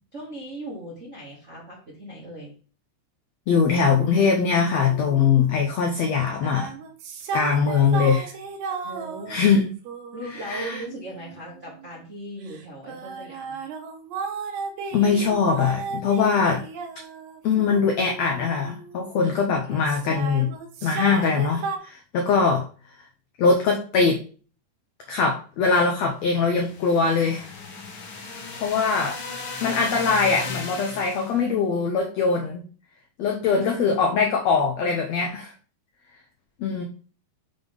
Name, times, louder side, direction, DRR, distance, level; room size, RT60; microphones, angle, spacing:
voice 1, 0.1-2.5 8.8-9.4 10.1-13.6, right 1 dB, 50° right, -4 dB, 0.8 m, -38 dB
voice 2, 3.5-6.7 7.3-8.3 9.3-9.6 10.5-10.8 14.9-16.6 17.4-20.5 20.8-22.6 23.4-24.2 25.1-27.5 28.6-29.2 29.6-32.6 33.2-35.5 36.6-36.8, left 5 dB, 85° left, 2 dB, 1.4 m, -22 dB
sound 1, 3.9-5.6 6.3-11.9 12.5-19.4 19.7-21.8, right 4 dB, 75° right, 2.6 m, -35 dB
sound 2, 26.5-31.4, left 3 dB, 70° left, 1.3 m, -36 dB
6.6 x 3.8 x 5.2 m, 0.38 s
omnidirectional pair, 4.3 m